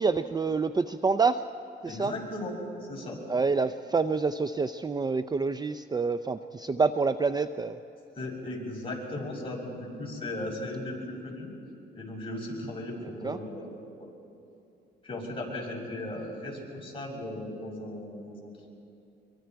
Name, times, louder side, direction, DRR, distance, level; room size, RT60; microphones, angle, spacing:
voice 1, 0.0-1.4 1.8-2.1 3.3-7.8 13.2-13.4, right 4 dB, 20° right, 11 dB, 0.5 m, -27 dB
voice 2, 1.9-3.2 8.2-11.5 11.9-14.1 15.0-18.5, left 1 dB, 25° left, -3 dB, 6.4 m, -37 dB
24.5 x 23.5 x 4.6 m, 2.7 s
cardioid pair, 90°, 20 cm